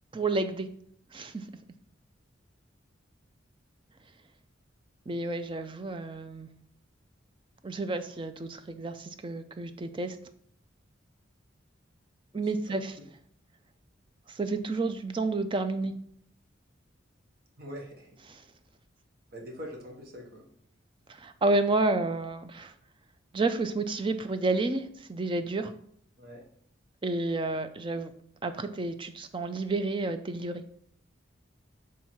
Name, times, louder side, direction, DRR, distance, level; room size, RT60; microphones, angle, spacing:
voice 1, 0.1-0.7 1.1-1.4 5.1-6.5 7.6-10.2 12.3-12.9 14.3-15.9 18.3-18.4 21.2-22.7 23.3-25.7 27.0-28.1 28.4-30.6, right 2 dB, 25° right, 9 dB, 0.4 m, -30 dB
voice 2, 12.4-13.1 17.6-18.1 19.3-20.5 26.2-26.4, equal, 50° right, 0 dB, 1.2 m, -44 dB
5.7 x 3.6 x 4.6 m, 0.65 s
head